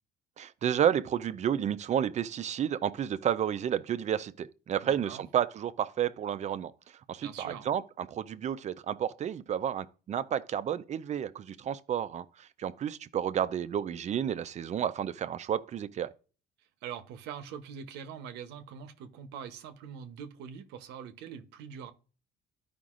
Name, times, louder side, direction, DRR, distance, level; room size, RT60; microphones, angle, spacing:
voice 1, 0.4-16.1, right 9 dB, 45° right, 0.5 m, -31 dB
voice 2, 4.8-5.2 7.2-7.7 16.8-21.9, right 8 dB, 90° right, 0.9 m, -43 dB
13.0 x 5.1 x 2.5 m
cardioid pair, 110°, 17 cm